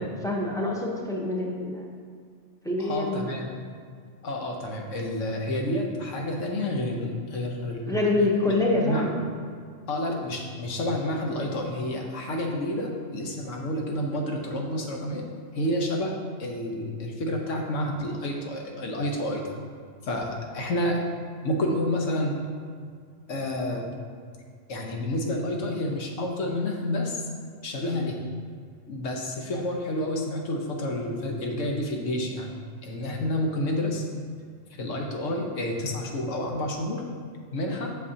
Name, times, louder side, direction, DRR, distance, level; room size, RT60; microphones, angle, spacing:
voice 1, 0.0-1.8 2.6-3.3 7.9-9.1, left 2 dB, 5° left, -2 dB, 0.6 m, -26 dB
voice 2, 2.8-3.5 4.2-7.9 8.2-8.3 8.8-9.1 9.9-15.3 15.5-19.5 20.0-21.0 21.4-22.3 23.3-23.9 24.7-27.3 27.6-28.2 28.9-32.5 32.8-34.0 34.7-37.0 37.5-37.9, left 1 dB, 80° left, 1 dB, 1.2 m, -29 dB
7.9 x 6.5 x 2.8 m, 2.1 s
omnidirectional pair, 1.3 m